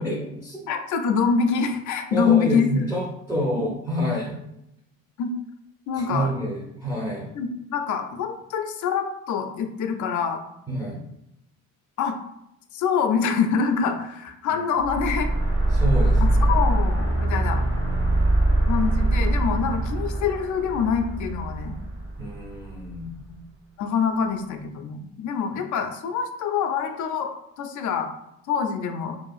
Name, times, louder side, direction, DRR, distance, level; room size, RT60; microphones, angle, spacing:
voice 1, 0.0-0.6 2.1-4.4 5.9-7.3 10.7-11.0 14.5-14.6 15.7-16.6 22.2-23.1, equal, 5° right, -5 dB, 0.6 m, -28 dB
voice 2, 0.7-2.9 3.6-3.7 5.2-5.3 5.9-6.3 7.3-10.4 12.0-12.2 12.7-15.3 16.2-17.6 18.6-21.8 23.3-23.4 23.8-27.3 27.6-28.1 28.5-29.2, left 6 dB, 50° left, 5 dB, 0.4 m, -25 dB
sound 1, 14.8-23.1, right 1 dB, 45° right, 1.0 m, -23 dB
2.6 x 2.3 x 2.4 m, 0.82 s
supercardioid pair, 75°, 38 cm